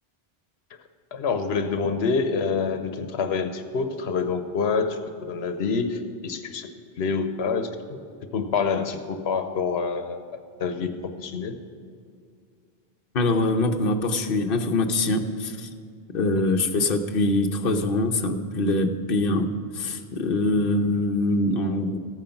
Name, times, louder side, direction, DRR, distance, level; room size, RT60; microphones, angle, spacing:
voice 1, 1.1-6.7 7.0-8.0 8.3-10.2 10.6-10.9 11.2-11.6 20.3-20.5, left 5 dB, 90° left, 8 dB, 1.1 m, -27 dB
voice 2, 13.1-15.7 16.1-19.5 19.7-22.0, left 2 dB, 65° left, 4 dB, 1.0 m, -23 dB
14.0 x 9.1 x 5.8 m, 2.3 s
omnidirectional pair, 1.0 m